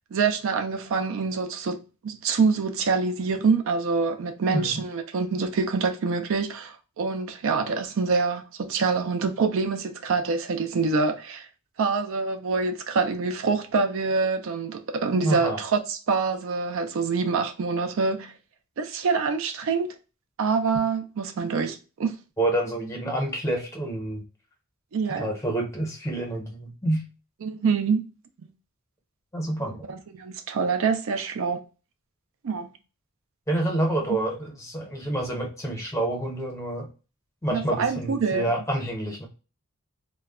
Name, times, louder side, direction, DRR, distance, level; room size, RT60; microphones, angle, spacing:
voice 1, 0.1-11.5 11.8-18.3 18.8-19.9 20.4-22.2 24.9-25.3 27.4-28.0 28.4-28.5 29.9-31.6 32.4-32.7 34.1-34.2 37.5-38.5, right 4 dB, 65° right, 0.4 m, -26 dB
voice 2, 4.5-4.8 15.1-15.6 22.4-24.2 25.2-27.0 29.3-29.8 33.5-36.9 37.4-39.3, right 1 dB, 15° left, 0.8 m, -28 dB
2.2 x 2.1 x 3.4 m
head